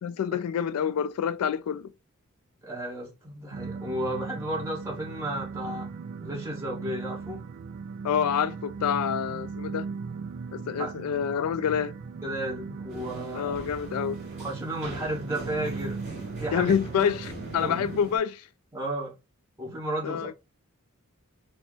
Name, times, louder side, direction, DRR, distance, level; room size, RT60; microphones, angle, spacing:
voice 1, 0.0-1.9 8.0-9.9 10.5-11.9 13.3-14.2 16.5-18.5 20.0-20.3, left 8 dB, 85° left, 0.3 m, -27 dB
voice 2, 2.6-5.9 6.2-7.4 10.5-10.9 12.2-13.6 14.4-16.1 16.4-16.7 17.5-17.8 18.7-19.1 19.6-20.3, right 1 dB, 15° right, 1.9 m, -33 dB
sound 1, 3.5-18.0, right 5 dB, 60° right, 0.3 m, -38 dB
sound 2, 12.9-18.2, right 1 dB, 35° right, 2.3 m, -42 dB
4.4 x 2.1 x 4.0 m
head